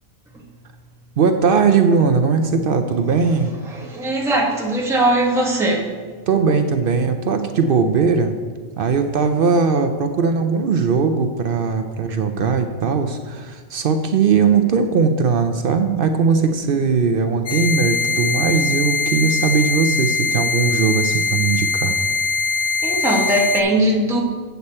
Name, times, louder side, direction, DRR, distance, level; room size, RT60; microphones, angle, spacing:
voice 1, 1.2-3.5 6.3-8.4 8.8-22.0, right 5 dB, 60° right, 7 dB, 0.8 m, -19 dB
voice 2, 3.7-5.9 22.8-24.2, right 1 dB, 5° right, -2 dB, 1.1 m, -19 dB
sound 1, 17.5-23.6, left 4 dB, 75° left, 1.2 m, -22 dB
8.3 x 8.0 x 4.3 m, 1.5 s
omnidirectional pair, 1.1 m